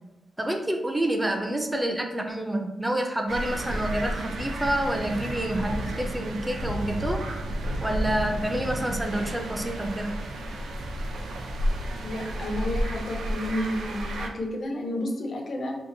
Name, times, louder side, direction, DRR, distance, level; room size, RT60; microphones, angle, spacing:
voice 1, 0.4-7.3 7.8-10.2, right 1 dB, 10° right, 4 dB, 0.3 m, -28 dB
sound 1, 3.3-14.3, right 1 dB, 90° right, 0.3 m, -31 dB
voice 2, 12.0-15.8, left 1 dB, 60° left, 1 dB, 0.6 m, -31 dB
2.8 x 2.7 x 2.6 m, 1.0 s
cardioid pair, 85°, 0 cm